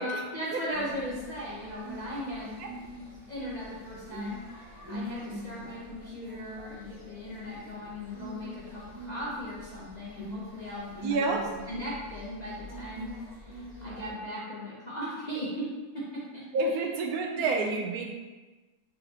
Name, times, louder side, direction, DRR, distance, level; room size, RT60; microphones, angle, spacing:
voice 1, 0.0-2.6 3.3-4.4 4.9-13.1 13.4-15.6 15.9-16.0 16.3-16.4 16.7-16.8 17.4-17.5, equal, 40° left, -7 dB, 0.6 m, -38 dB
sound 1, 0.7-14.1, equal, 15° right, 0.9 m, -44 dB
voice 2, 11.0-11.4 16.5-18.1, right 3 dB, 75° right, 2 dB, 1.0 m, -29 dB
4.1 x 4.0 x 2.8 m, 1.2 s
omnidirectional pair, 1.7 m